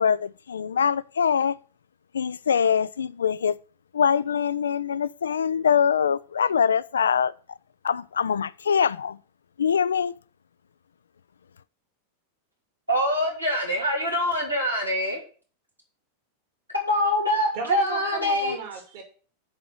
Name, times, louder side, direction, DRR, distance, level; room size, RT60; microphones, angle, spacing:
voice 1, 0.0-1.6 2.1-3.5 3.9-7.3 7.8-9.2 9.6-10.1, left 7 dB, 70° left, 0.3 m, -23 dB
voice 2, 12.9-15.2 16.7-18.6, left 1 dB, 90° right, 3.0 m, -24 dB
voice 3, 17.5-19.0, right 4 dB, 50° right, 2.4 m, -35 dB
7.4 x 4.8 x 7.1 m
figure-of-eight pair, 90°, 0 cm